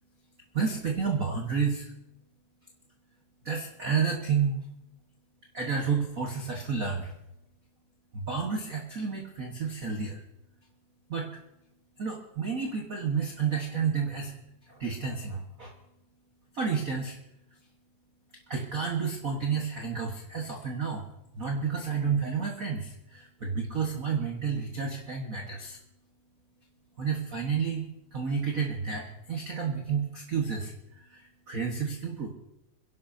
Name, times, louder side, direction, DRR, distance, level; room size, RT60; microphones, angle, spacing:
voice 1, 0.5-1.9 3.4-4.6 5.5-7.1 8.1-10.2 11.1-11.4 12.0-14.3 14.7-15.7 16.5-17.2 18.5-21.1 21.3-25.8 27.0-32.3, right 6 dB, 45° right, 0 dB, 1.0 m, -30 dB
28.0 x 11.5 x 2.7 m, 0.89 s
omnidirectional pair, 3.3 m